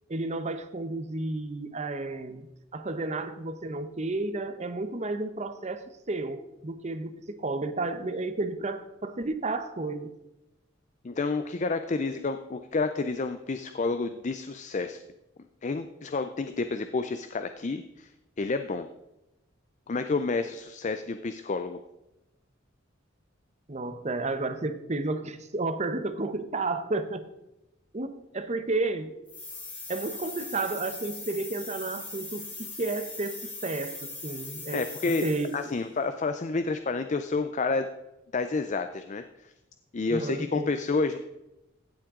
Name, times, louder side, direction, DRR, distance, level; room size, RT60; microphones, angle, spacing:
voice 1, 0.1-2.5 2.7-5.8 6.1-10.1 23.7-27.2 27.9-29.2 29.9-34.8 35.2-35.7 40.1-40.8, right 2 dB, 35° right, 10 dB, 0.8 m, -32 dB
voice 2, 11.0-15.0 15.6-18.1 18.4-18.9 19.9-21.8 34.7-35.2 35.5-37.9 38.3-39.5 39.9-41.2, left 3 dB, 35° left, 9 dB, 0.5 m, -29 dB
sound 1, 29.3-35.7, left 2 dB, 10° left, 2.0 m, -40 dB
16.0 x 7.5 x 3.7 m, 0.93 s
head